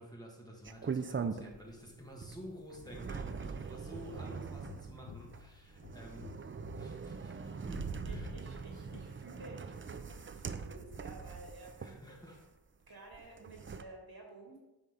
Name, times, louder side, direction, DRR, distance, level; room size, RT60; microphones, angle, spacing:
voice 1, 0.0-6.4 6.7-8.3 11.8-12.4, equal, 10° left, -2 dB, 1.5 m, -51 dB
sound 1, 0.6-1.8 2.2-12.5 13.1-13.8, right 5 dB, 30° right, 0.4 m, -42 dB
sound 2, 4.1-9.1, left 8 dB, 65° left, 0.6 m, -53 dB
voice 2, 7.3-7.7 8.0-12.4 12.9-14.6, right 2 dB, 55° right, 0 dB, 1.9 m, -53 dB
8.4 x 3.3 x 5.6 m, 1.0 s
wide cardioid pair, 60°, 43 cm